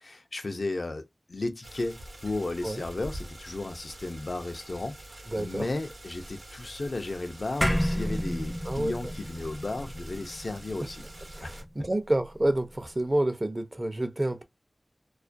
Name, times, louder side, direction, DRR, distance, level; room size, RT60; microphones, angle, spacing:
voice 1, 0.0-5.0 5.4-11.0 11.4-11.5, left 2 dB, 70° left, 0.4 m, -34 dB
sound 1, 1.6-11.6, right 1 dB, 80° right, 0.8 m, -46 dB
voice 2, 5.3-5.7 8.7-9.1 11.3-14.4, right 1 dB, 35° right, 0.5 m, -29 dB
sound 2, 7.6-12.2, equal, 15° left, 0.5 m, -31 dB
2.3 x 2.1 x 2.5 m
wide cardioid pair, 45°, 0 cm